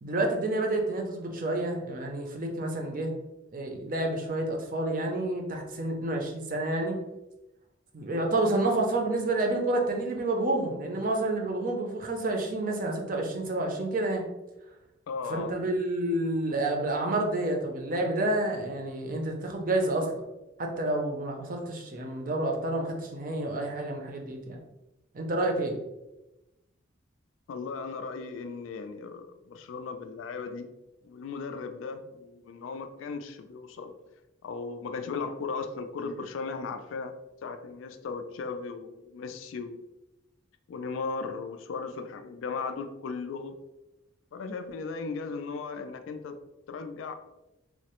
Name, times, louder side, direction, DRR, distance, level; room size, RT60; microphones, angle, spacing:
voice 1, 0.0-3.1 3.5-7.0 7.9-14.2 15.3-20.2 20.6-24.6 25.1-25.8, right 2 dB, 45° right, 2 dB, 0.5 m, -29 dB
voice 2, 15.1-15.6 27.5-30.7 31.0-33.9 34.4-37.1 37.4-39.8 40.7-43.6 44.3-46.4 46.7-47.1, left 4 dB, 80° left, 7 dB, 0.3 m, -36 dB
3.0 x 2.0 x 2.9 m, 0.97 s
head